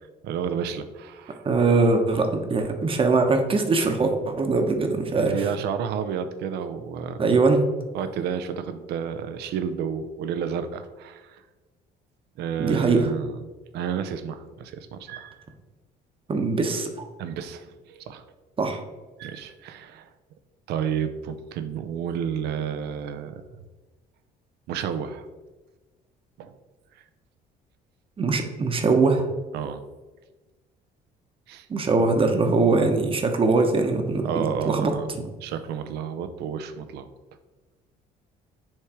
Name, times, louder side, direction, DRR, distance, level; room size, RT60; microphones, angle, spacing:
voice 1, 0.2-1.5 5.2-7.3 7.9-11.4 12.4-13.5 13.7-15.5 17.2-18.2 19.2-20.1 20.7-23.4 24.7-25.3 26.4-26.5 29.5-29.8 31.5-31.7 34.2-35.1 35.4-37.1, right 7 dB, 75° right, 10 dB, 0.6 m, -31 dB
voice 2, 1.4-5.4 7.2-7.6 12.6-13.1 16.3-16.9 18.6-18.8 28.2-29.2 31.7-35.3, right 3 dB, 30° right, 5 dB, 1.0 m, -22 dB
7.4 x 3.3 x 4.9 m, 1.2 s
cardioid pair, 110°, 17 cm